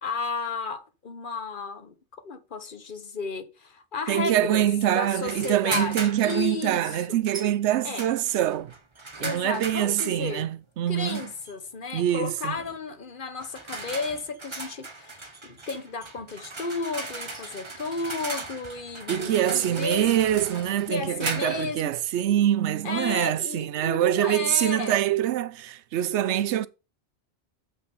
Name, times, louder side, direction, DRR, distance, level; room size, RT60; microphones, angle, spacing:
voice 1, 0.0-4.7 4.9-7.2 7.8-8.1 9.2-10.5 10.9-20.1 20.9-21.9 22.8-25.0, left 4 dB, 50° left, 1.2 m, -33 dB
voice 2, 4.1-8.7 9.2-11.2 11.9-12.6 19.1-26.7, right 11 dB, 85° right, 0.9 m, -24 dB
sound 1, 5.3-6.5 7.3-7.5 8.0-10.2 11.0-11.5 12.6-12.8 13.4-21.7, right 2 dB, 25° right, 1.1 m, -37 dB
7.7 x 5.6 x 5.3 m
omnidirectional pair, 1.1 m